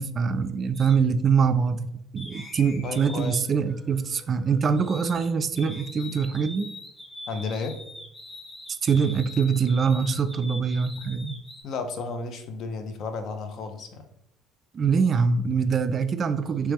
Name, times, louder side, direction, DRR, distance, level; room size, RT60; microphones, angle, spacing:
voice 1, 0.0-6.7 8.8-11.4 14.7-16.7, right 6 dB, 45° right, 11 dB, 0.3 m, -24 dB
sound 1, 0.7-1.0 2.2-5.3 5.6-11.6, left 1 dB, 35° left, 1.5 m, -43 dB
voice 2, 2.8-3.4 7.3-7.8 11.6-14.0, left 4 dB, 60° left, 7 dB, 0.5 m, -33 dB
3.3 x 3.2 x 3.1 m, 0.77 s
hypercardioid pair, 65°, 0 cm